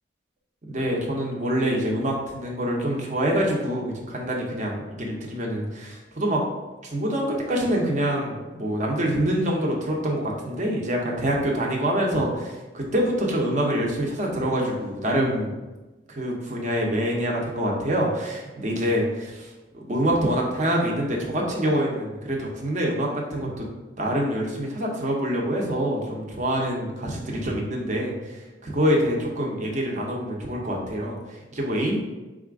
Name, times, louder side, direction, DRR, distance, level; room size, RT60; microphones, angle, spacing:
voice 1, 0.7-6.5 6.8-15.5 16.1-23.7 24.0-31.2 31.5-32.0, equal, 45° right, -1 dB, 0.9 m, -26 dB
4.3 x 2.5 x 4.6 m, 1.1 s
head